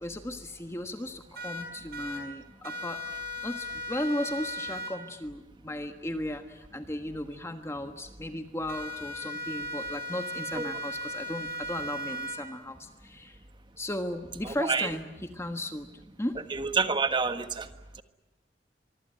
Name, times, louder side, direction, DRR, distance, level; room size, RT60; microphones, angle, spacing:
voice 1, 0.0-3.0 3.4-6.4 6.7-12.8 13.0-13.3 13.8-15.9 16.2-16.4, left 1 dB, 15° left, 6 dB, 1.4 m, -35 dB
sound 1, 1.3-2.2 2.6-4.9 8.7-12.4, left 1 dB, 60° right, 6.2 m, -37 dB
voice 2, 14.4-14.9 16.5-17.7, right 4 dB, 25° right, 9 dB, 1.4 m, -28 dB
24.5 x 24.0 x 8.9 m, 1.1 s
head